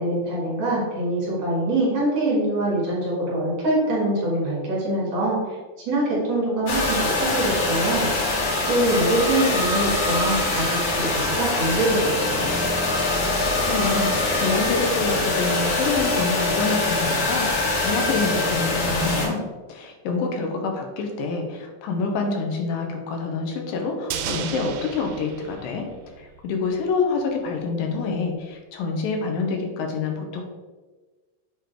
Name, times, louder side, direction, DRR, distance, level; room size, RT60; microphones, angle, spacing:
voice 1, 0.0-5.6 5.9-8.1 8.7-10.7 10.9-12.5, right 1 dB, 50° right, -6 dB, 2.8 m, -24 dB
sound 1, 6.7-19.3, left 2 dB, 65° left, 2.5 m, -23 dB
voice 2, 13.1-19.4 19.7-30.4, left 4 dB, 80° left, 2 dB, 2.5 m, -27 dB
sound 2, 24.1-26.5 26.8-26.9, right 8 dB, 90° right, 2.4 m, -33 dB
7.1 x 3.2 x 4.5 m, 1.3 s
omnidirectional pair, 4.1 m